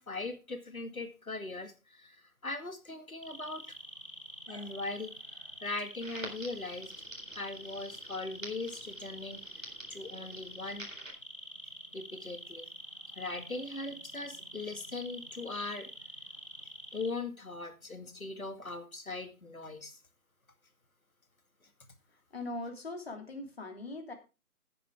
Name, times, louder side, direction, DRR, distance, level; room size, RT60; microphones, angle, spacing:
voice 1, 0.0-3.8 4.5-5.1 5.6-6.9 7.3-10.9 11.9-12.7 13.2-15.9 16.9-20.0, left 3 dB, 70° left, 8 dB, 2.2 m, -40 dB
sound 1, 3.2-17.1, right 1 dB, 20° left, 0.8 m, -47 dB
Crackle, 6.0-11.1, right 2 dB, 60° right, 3.9 m, -49 dB
voice 2, 22.3-24.1, left 2 dB, 45° left, 3 dB, 2.8 m, -40 dB
14.5 x 9.4 x 3.6 m, 0.30 s
figure-of-eight pair, 155°, 44 cm